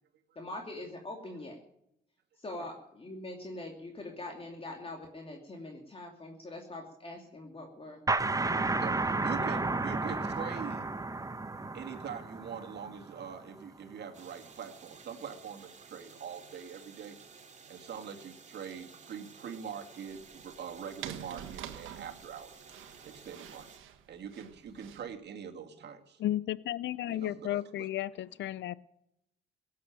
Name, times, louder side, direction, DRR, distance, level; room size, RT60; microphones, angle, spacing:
voice 1, 0.3-1.6 2.3-8.0 8.5-8.8 9.6-9.7, left 2 dB, 30° left, 2 dB, 2.7 m, -43 dB
sound 1, 8.1-13.5, right 3 dB, 15° right, 1.1 m, -32 dB
voice 2, 8.8-10.9 11.7-17.2 17.7-22.6 23.0-23.7 24.1-26.2 27.1-27.9, right 7 dB, 60° right, 4 dB, 2.4 m, -43 dB
sound 2, 14.1-23.8, right 5 dB, 35° right, 2.5 m, -54 dB
sound 3, 20.1-25.1, right 10 dB, 85° right, 1.5 m, -47 dB
voice 3, 26.2-28.8, left 13 dB, 65° left, 19 dB, 0.6 m, -33 dB
17.5 x 8.6 x 9.1 m, 0.80 s
cardioid pair, 90°, 20 cm